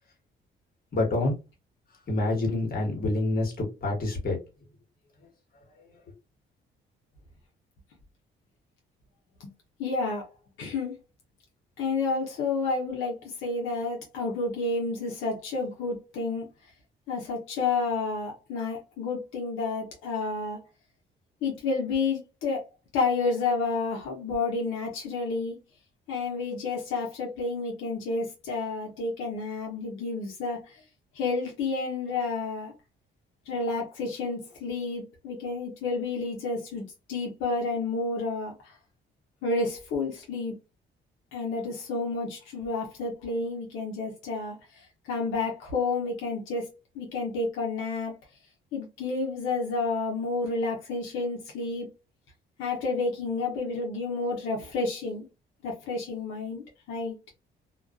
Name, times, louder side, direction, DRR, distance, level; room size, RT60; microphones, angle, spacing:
voice 1, 0.9-1.3 2.1-4.4, left 2 dB, 50° left, 1.3 m, -27 dB
voice 2, 9.8-10.3 10.6-10.9 11.8-16.5 17.1-20.6 21.4-25.6 26.1-30.8 31.1-32.7 33.5-38.7 39.4-40.5 41.3-48.1 48.7-51.9 52.6-55.3 55.6-57.2, left 3 dB, 90° left, 0.8 m, -30 dB
2.3 x 2.3 x 2.3 m
cardioid pair, 90°, 20 cm